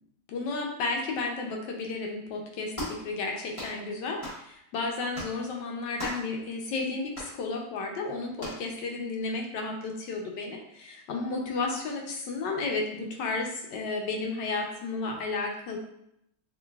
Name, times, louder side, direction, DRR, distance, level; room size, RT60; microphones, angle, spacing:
voice 1, 0.3-15.8, left 3 dB, 85° left, 1 dB, 1.3 m, -33 dB
sound 1, 2.7-3.0 3.5-3.8 4.2-4.4 5.1-5.4 6.0-6.3 7.1-7.3 8.4-8.6, left 1 dB, 25° left, 0.8 m, -37 dB
3.8 x 3.1 x 2.3 m, 0.77 s
omnidirectional pair, 1.9 m